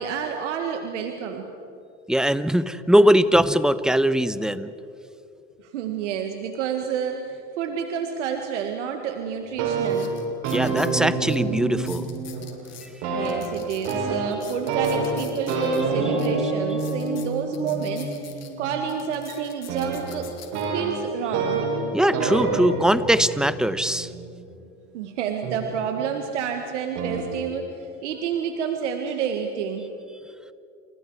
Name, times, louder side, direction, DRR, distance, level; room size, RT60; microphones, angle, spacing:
voice 1, 0.0-1.5 5.7-10.1 13.1-18.2 18.6-20.3 20.7-21.6 24.9-29.9, right 7 dB, 90° right, 4 dB, 1.9 m, -29 dB
voice 2, 2.1-4.7 10.5-12.1 21.9-24.1, equal, ahead, 13 dB, 1.1 m, -20 dB
sound 1, 9.2-9.3 9.8-10.9 11.3-11.4 11.8-12.9 13.2-15.8 16.2-16.3 16.7-18.5 18.9-20.6 21.3-21.5, left 10 dB, 45° left, 4.0 m, -45 dB
sound 2, 9.4-12.7 13.0-24.6 25.4-26.3 27.0-27.3, right 3 dB, 70° right, 7.6 m, -28 dB
29.5 x 29.0 x 4.9 m, 2.6 s
supercardioid pair, 95°, 35 cm